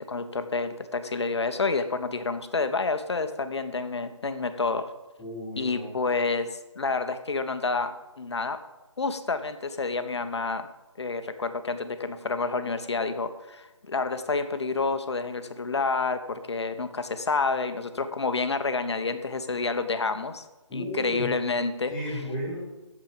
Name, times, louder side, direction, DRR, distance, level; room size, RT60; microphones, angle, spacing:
voice 1, 0.1-4.8 5.6-8.6 9.0-10.7 11.0-20.4 20.7-21.9, left 4 dB, 60° left, 9 dB, 1.1 m, -29 dB
voice 2, 5.2-6.0 20.7-21.3 21.9-22.6, equal, 5° left, -5 dB, 3.3 m, -34 dB
9.2 x 7.4 x 6.8 m, 1.1 s
figure-of-eight pair, 155°, 16 cm